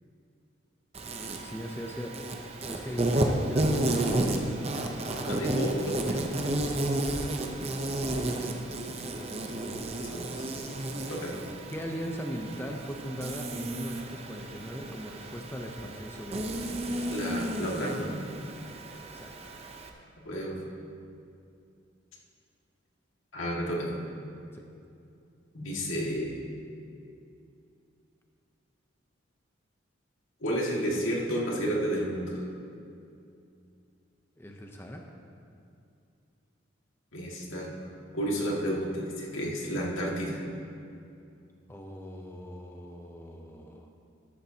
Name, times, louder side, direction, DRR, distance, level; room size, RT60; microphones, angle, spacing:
Insect, 0.9-19.9, right 1 dB, 30° right, 0.7 m, -32 dB
voice 1, 1.4-2.1 2.7-4.1 6.6-6.8 9.0-9.1 11.7-16.6 18.9-19.6 24.5-24.6 34.4-35.0 41.7-43.9, equal, 10° left, 1 dB, 0.6 m, -39 dB
voice 2, 5.3-6.3 10.0-10.8 11.1-11.4 17.1-18.2 20.2-20.6 23.3-24.0 25.5-26.4 30.4-32.4 37.1-37.7 38.1-40.4, equal, 90° left, -3 dB, 2.1 m, -31 dB
13.5 x 12.0 x 2.9 m, 2.5 s
head